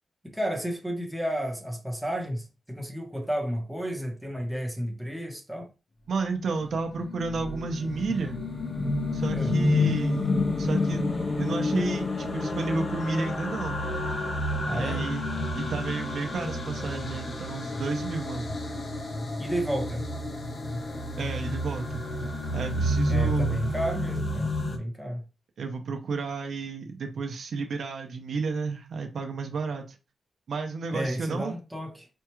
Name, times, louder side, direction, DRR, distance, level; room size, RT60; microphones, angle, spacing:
voice 1, 0.2-5.7 9.3-9.5 14.6-15.0 19.4-20.1 23.1-25.3 30.9-32.1, equal, ahead, 0.8 m, -32 dB
voice 2, 6.1-8.4 9.1-11.1 11.4-13.8 14.7-15.2 15.5-18.5 21.2-22.0 22.5-23.6 25.6-29.8 30.5-31.6, right 4 dB, 65° right, 0.6 m, -32 dB
sound 1, 6.7-24.8, left 2 dB, 40° left, 0.7 m, -29 dB
4.4 x 2.3 x 3.0 m
wide cardioid pair, 135°, 0 cm